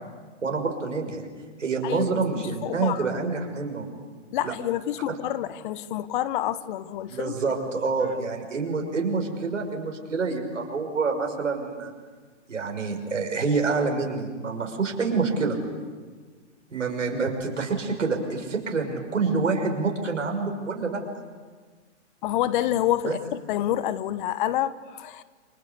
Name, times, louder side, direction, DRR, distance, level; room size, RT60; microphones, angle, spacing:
voice 1, 0.4-1.3 1.6-3.9 4.4-4.5 7.1-11.9 12.5-15.6 16.7-21.0 23.0-23.2, right 4 dB, 90° right, 3 dB, 6.1 m, -27 dB
voice 2, 2.3-3.1 4.3-7.3 22.2-25.2, left 12 dB, 40° left, 15 dB, 1.2 m, -28 dB
29.0 x 24.5 x 8.3 m, 1.5 s
hypercardioid pair, 130°, 37 cm